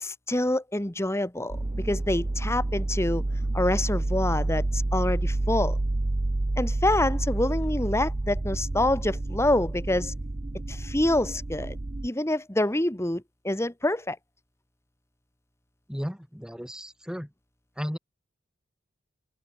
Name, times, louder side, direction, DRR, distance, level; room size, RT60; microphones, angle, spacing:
voice 1, 0.0-3.2 3.5-5.8 6.6-10.1 10.7-11.8 12.0-14.2, left 1 dB, 15° left, 1.6 m, -26 dB
sound 1, 1.5-12.1, right 2 dB, 30° right, 0.6 m, -29 dB
voice 2, 15.9-17.3 17.8-18.0, equal, 5° right, 5.4 m, -34 dB
head